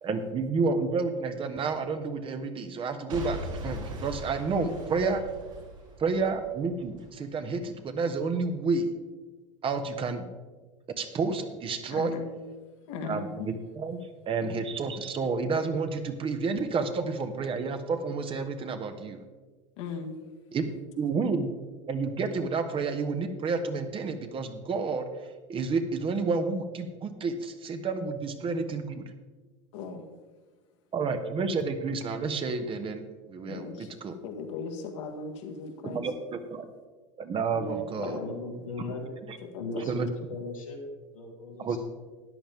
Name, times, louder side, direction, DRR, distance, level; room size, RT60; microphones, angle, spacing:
voice 1, 0.0-5.3 6.0-8.9 9.6-10.3 11.0-12.1 13.1-14.0 14.3-19.2 20.5-20.6 21.0-21.5 21.9-25.1 25.5-29.1 30.9-33.0 33.3-34.1 35.8-36.7 37.2-38.2 39.3-39.4 39.9-40.1 41.6-41.8, right 4 dB, 30° right, 7 dB, 1.3 m, -30 dB
Boom / Shatter / Crushing, 3.1-7.1 7.6-7.7, right 1 dB, 75° right, 3.3 m, -40 dB
voice 2, 11.9-12.3 12.9-13.5 19.8-20.2 29.7-30.1 33.5-33.9 34.2-36.0 37.5-38.3 39.4-39.8, left 4 dB, 65° left, 3 dB, 1.8 m, -37 dB
voice 3, 38.0-39.0 39.6-41.8, left 2 dB, 90° left, -2 dB, 2.7 m, -38 dB
13.5 x 10.0 x 3.5 m, 1.3 s
hypercardioid pair, 80°, 17 cm